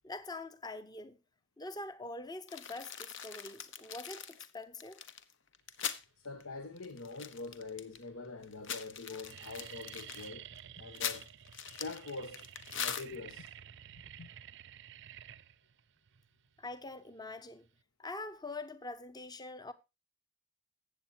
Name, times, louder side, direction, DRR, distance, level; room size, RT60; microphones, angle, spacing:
voice 1, 0.0-1.2 1.6-5.0 16.6-17.7 18.0-19.7, left 2 dB, 20° left, 0.8 m, -44 dB
sound 1, 2.5-6.0 6.4-6.5 6.8-8.0 8.4-13.5, left 8 dB, 60° left, 1.1 m, -42 dB
voice 2, 6.2-10.5 10.8-11.3 11.6-12.5 12.8-13.5 14.2-14.3, left 3 dB, 75° left, 1.2 m, -44 dB
sound 2, 6.6-7.2 7.9-8.0 8.2-8.6 8.9-17.8, right 10 dB, 55° right, 0.5 m, -52 dB
14.5 x 8.5 x 2.9 m
head